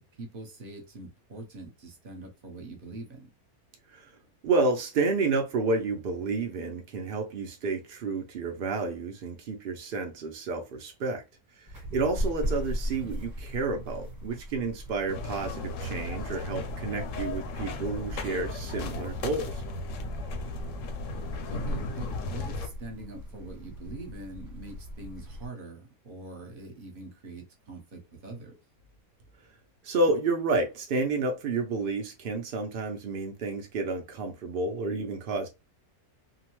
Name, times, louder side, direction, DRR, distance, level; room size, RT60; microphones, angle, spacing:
voice 1, 0.0-3.3 13.0-13.2 21.5-28.5, right 2 dB, 40° right, 0.9 m, -43 dB
voice 2, 4.4-11.2 11.6-19.6 29.8-35.5, right 3 dB, 75° right, 0.5 m, -30 dB
sound 1, 11.7-25.5, equal, 15° right, 1.1 m, -38 dB
sound 2, 15.1-22.7, left 2 dB, 65° left, 0.8 m, -36 dB
2.7 x 2.1 x 3.0 m
omnidirectional pair, 1.6 m